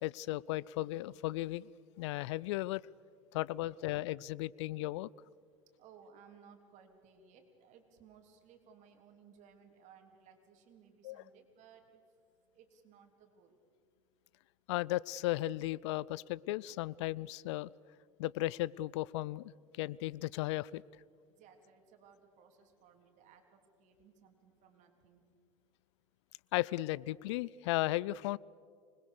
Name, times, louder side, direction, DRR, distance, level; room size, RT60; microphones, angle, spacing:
voice 1, 0.0-1.7 2.0-2.8 3.3-5.1 11.0-11.2 14.7-17.7 18.2-20.8 26.5-28.4, left 17 dB, 60° left, 23 dB, 0.5 m, -35 dB
voice 2, 5.8-12.0 12.5-13.6 21.3-25.2, right 7 dB, 45° right, 4 dB, 3.5 m, -61 dB
25.5 x 20.5 x 6.7 m, 2.2 s
hypercardioid pair, 85°, 17 cm